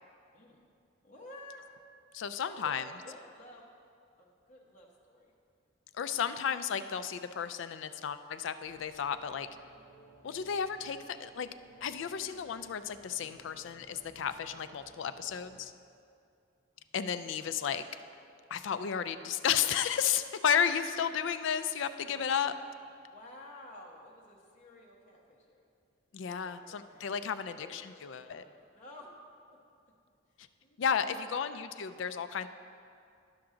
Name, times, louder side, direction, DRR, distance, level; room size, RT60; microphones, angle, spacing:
voice 1, 1.0-1.7 2.4-3.6 4.2-5.3 6.0-6.3 16.8-16.9 17.2-17.5 22.1-22.5 23.1-25.7 26.2-29.2 29.4-29.6 30.3-31.4, left 1 dB, 35° left, -2 dB, 1.1 m, -53 dB
voice 2, 2.1-2.8 6.0-9.5 10.2-11.5 11.8-15.7 16.9-17.8 18.5-22.5 26.1-28.4 30.8-32.5, left 7 dB, 70° left, 11 dB, 0.3 m, -33 dB
sound 1, 8.6-15.6, right 2 dB, 40° right, 1.9 m, -59 dB
11.5 x 5.9 x 3.8 m, 2.4 s
head